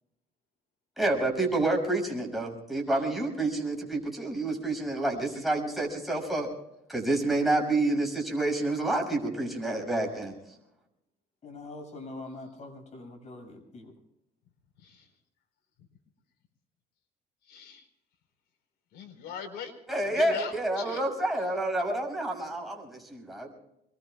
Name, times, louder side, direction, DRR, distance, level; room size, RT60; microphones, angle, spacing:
voice 1, 1.0-6.5 6.9-10.3 19.9-23.5, right 2 dB, ahead, 0 dB, 6.5 m, -28 dB
voice 2, 11.4-13.9, left 2 dB, 40° left, 5 dB, 6.5 m, -44 dB
voice 3, 17.5-17.9 18.9-19.7 20.2-21.0, left 6 dB, 80° left, 6 dB, 4.1 m, -40 dB
26.5 x 22.5 x 2.3 m, 0.84 s
cardioid pair, 110°, 17 cm